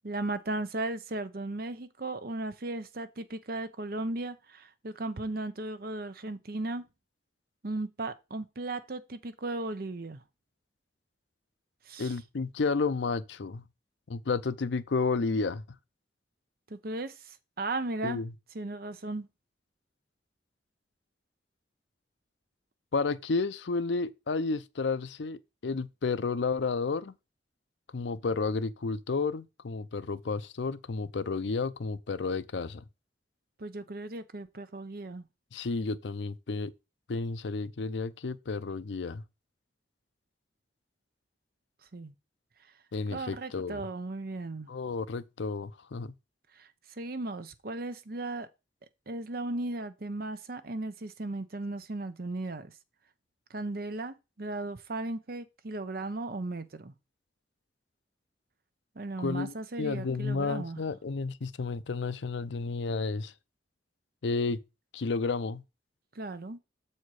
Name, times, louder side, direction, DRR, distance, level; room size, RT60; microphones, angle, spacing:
voice 1, 0.0-6.9 7.6-10.2 11.9-12.2 16.7-18.2 18.5-19.3 33.6-35.2 41.9-42.1 43.1-44.7 46.6-46.7 47.0-48.5 49.1-52.7 53.5-56.9 59.0-60.8 66.1-66.6, right 2 dB, 55° right, 0.8 m, -36 dB
voice 2, 12.0-13.7 14.1-15.6 18.0-18.3 22.9-27.1 27.9-32.8 35.5-36.7 37.1-39.2 42.9-43.8 44.7-46.1 59.2-63.3 64.2-64.6 64.9-65.6, left 4 dB, 85° left, 0.6 m, -31 dB
7.2 x 4.3 x 4.8 m
head